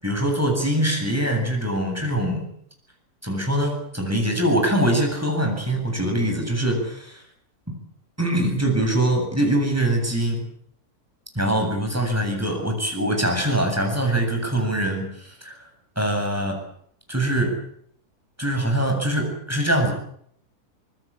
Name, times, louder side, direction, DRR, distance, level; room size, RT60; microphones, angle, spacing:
voice 1, 0.0-2.5 3.2-7.2 7.7-7.8 8.2-10.5 11.3-15.6 16.0-16.5 17.1-17.5 18.4-19.9, right 1 dB, 10° right, 3 dB, 7.7 m, -23 dB
25.5 x 20.0 x 8.7 m, 0.66 s
omnidirectional pair, 1.6 m